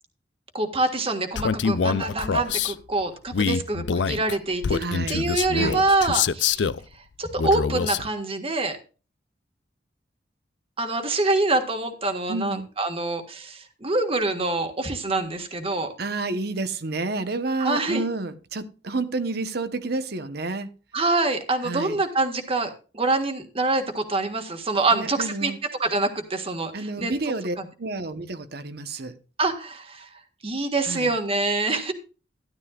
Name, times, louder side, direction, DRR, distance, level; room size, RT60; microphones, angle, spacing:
voice 1, 0.5-4.8 5.1-6.7 7.2-8.8 10.8-15.9 17.6-18.0 20.9-25.5 25.8-27.1 27.6-27.7 29.4-30.1 30.4-31.9, right 2 dB, 35° right, 1.7 m, -25 dB
Male speech man speaking, 1.3-2.7 3.3-6.8 7.4-8.1, left 6 dB, 85° left, 0.5 m, -25 dB
voice 2, 4.8-5.3 5.5-5.8 12.3-12.7 16.0-20.7 21.6-22.0 24.9-25.6 26.7-29.2 30.8-31.1, right 3 dB, 60° right, 1.0 m, -30 dB
13.0 x 11.5 x 2.4 m
head